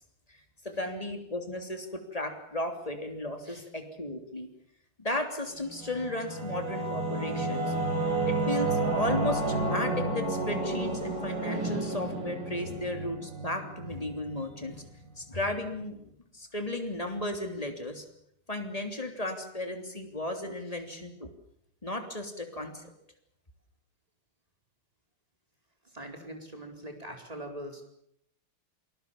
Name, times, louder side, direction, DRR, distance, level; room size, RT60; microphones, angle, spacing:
voice 1, 0.6-4.5 5.0-7.7 8.3-18.0 18.5-21.3 21.8-22.8, left 1 dB, 15° left, 5 dB, 3.3 m, -35 dB
Singing / Musical instrument, 5.7-14.8, right 2 dB, 60° right, 5.9 m, -31 dB
voice 2, 25.8-27.8, right 1 dB, 15° right, 3 dB, 4.6 m, -42 dB
28.0 x 20.5 x 7.3 m, 0.72 s
omnidirectional pair, 2.3 m